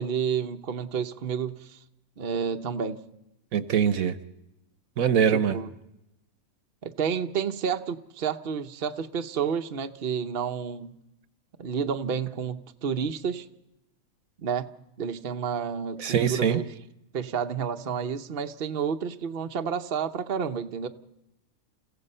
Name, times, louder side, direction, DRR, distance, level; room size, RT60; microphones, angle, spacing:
voice 1, 0.0-1.8 2.2-3.0 5.3-5.7 6.8-11.0 11.6-13.5 14.4-14.7 15.0-16.6 17.1-20.9, right 7 dB, 45° right, 6 dB, 0.9 m, -30 dB
voice 2, 3.5-4.1 5.0-5.6 16.0-16.6, right 8 dB, 65° right, 14 dB, 1.3 m, -23 dB
30.0 x 16.0 x 5.5 m, 0.88 s
omnidirectional pair, 1.6 m